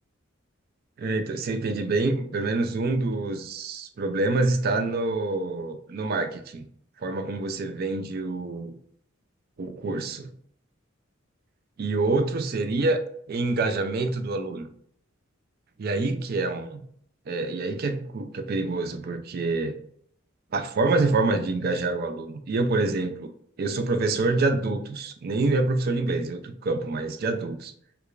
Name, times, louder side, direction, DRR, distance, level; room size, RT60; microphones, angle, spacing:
voice 1, 1.0-6.6 7.0-8.7 9.6-10.3 11.8-13.0 13.3-14.7 15.8-16.8 17.3-19.8 20.5-23.3 23.6-27.7, right 3 dB, 50° right, 7 dB, 0.4 m, -26 dB
4.7 x 2.3 x 2.4 m, 0.63 s
head